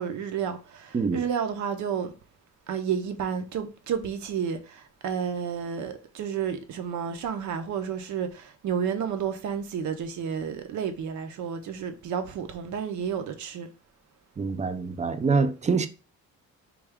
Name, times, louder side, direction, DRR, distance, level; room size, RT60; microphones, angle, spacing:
voice 1, 0.0-2.1 2.7-13.7, right 7 dB, 75° right, 0.7 m, -31 dB
voice 2, 14.4-15.9, right 4 dB, 25° right, 0.4 m, -25 dB
3.3 x 2.3 x 3.5 m
cardioid pair, 90°, 30 cm